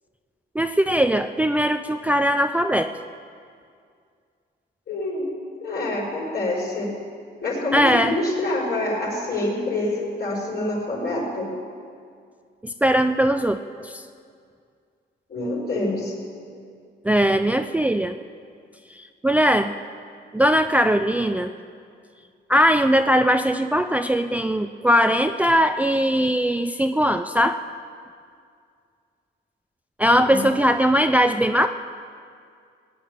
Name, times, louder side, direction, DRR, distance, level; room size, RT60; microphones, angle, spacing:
voice 1, 0.6-2.9 7.7-8.2 12.6-14.0 17.0-18.1 18.9-19.7 20.3-21.5 22.5-27.6 30.0-31.7, equal, 5° right, 8 dB, 0.5 m, -20 dB
voice 2, 4.9-5.3 5.6-6.9 7.4-11.5 15.3-16.1 30.3-30.5, left 2 dB, 55° left, -4 dB, 5.2 m, -26 dB
18.0 x 9.4 x 7.7 m, 2.2 s
cardioid pair, 90°, 20 cm